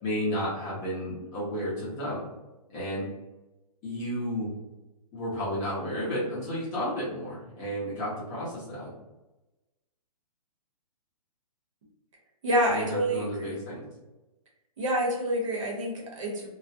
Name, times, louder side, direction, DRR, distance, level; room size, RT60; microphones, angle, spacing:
voice 1, 0.0-2.3 2.7-3.1 3.8-4.5 5.1-8.9 12.7-13.8, equal, 20° left, -8 dB, 0.6 m, -32 dB
voice 2, 12.4-13.6 14.8-16.5, right 1 dB, 55° right, -2 dB, 0.9 m, -28 dB
2.3 x 2.1 x 2.7 m, 1.0 s
hypercardioid pair, 165°, 20 cm